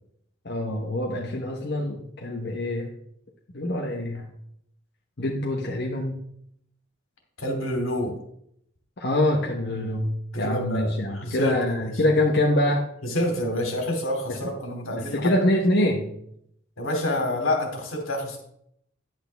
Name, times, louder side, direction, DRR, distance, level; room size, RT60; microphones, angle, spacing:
voice 1, 0.4-2.9 3.5-4.3 5.2-6.1 9.0-12.8 14.3-14.4 14.9-16.1, left 1 dB, 55° left, -1 dB, 1.1 m, -25 dB
voice 2, 7.4-8.1 10.3-11.9 13.0-15.3 16.8-18.4, left 1 dB, 85° left, 2 dB, 2.8 m, -28 dB
10.5 x 8.6 x 3.5 m, 0.72 s
head